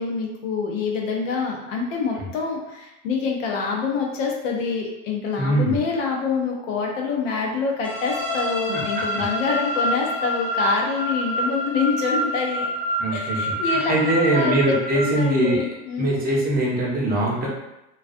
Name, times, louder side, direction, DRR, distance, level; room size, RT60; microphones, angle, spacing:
voice 1, 0.0-12.7 13.1-16.2, left 5 dB, 80° left, 0 dB, 0.7 m, -26 dB
voice 2, 5.4-5.8 8.7-9.2 13.0-15.7 16.0-17.5, right 1 dB, 25° right, -3 dB, 0.7 m, -22 dB
sound 1, 7.8-15.6, equal, 35° left, 0.9 m, -27 dB
2.3 x 2.3 x 2.5 m, 0.92 s
supercardioid pair, 105°, 37 cm